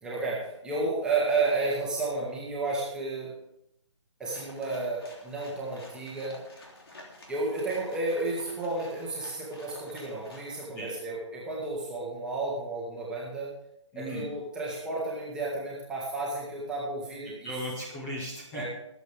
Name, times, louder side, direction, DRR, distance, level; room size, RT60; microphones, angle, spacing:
voice 1, 0.0-3.3 4.2-6.4 7.3-13.5 13.9-17.5 18.5-18.7, right 3 dB, 5° right, -6 dB, 2.3 m, -32 dB
sound 1, 4.2-10.7, left 1 dB, 50° left, 3.4 m, -50 dB
voice 2, 13.9-14.3 17.3-18.7, equal, 10° left, -3 dB, 2.2 m, -37 dB
23.5 x 8.3 x 3.6 m, 0.81 s
figure-of-eight pair, 145°, 16 cm